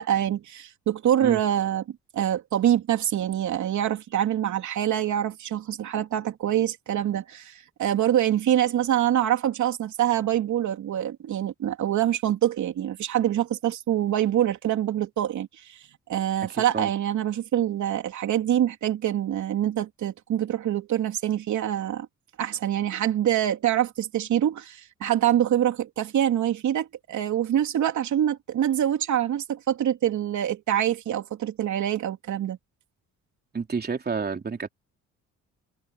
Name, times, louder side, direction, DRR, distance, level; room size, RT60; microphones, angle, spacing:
voice 1, 0.0-1.8 2.1-15.8 16.1-22.1 22.4-32.6, right 11 dB, 70° right, 3.1 m, -25 dB
voice 2, 16.5-16.9 33.5-34.7, right 5 dB, 30° right, 3.4 m, -30 dB
cardioid pair, 90°, 30 cm